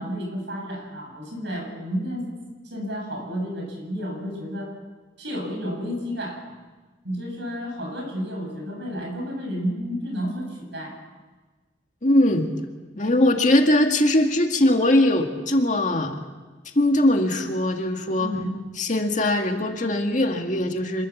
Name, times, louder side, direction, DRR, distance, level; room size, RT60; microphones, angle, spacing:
voice 1, 0.0-2.4 2.7-4.7 5.2-6.5 7.0-11.0 18.2-18.5, equal, 65° right, 2 dB, 7.4 m, -31 dB
voice 2, 12.0-12.5 13.0-16.1 16.8-18.3 18.8-21.1, left 1 dB, 40° left, 3 dB, 2.1 m, -21 dB
26.5 x 21.0 x 7.4 m, 1.3 s
head